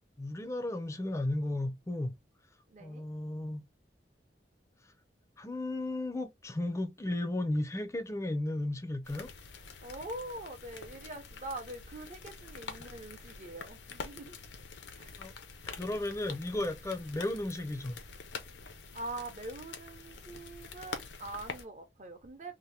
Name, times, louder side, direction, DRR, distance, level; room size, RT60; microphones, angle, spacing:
voice 1, 0.2-2.2 2.8-3.6 5.4-9.3 15.2-15.3 15.7-18.0, left 1 dB, 15° left, 0.5 m, -34 dB
voice 2, 2.7-3.1 9.8-14.4 15.0-15.2 18.9-22.6, right 2 dB, 40° right, 0.7 m, -43 dB
sound 1, 9.0-21.7, left 5 dB, 85° left, 0.6 m, -46 dB
2.8 x 2.1 x 3.3 m
head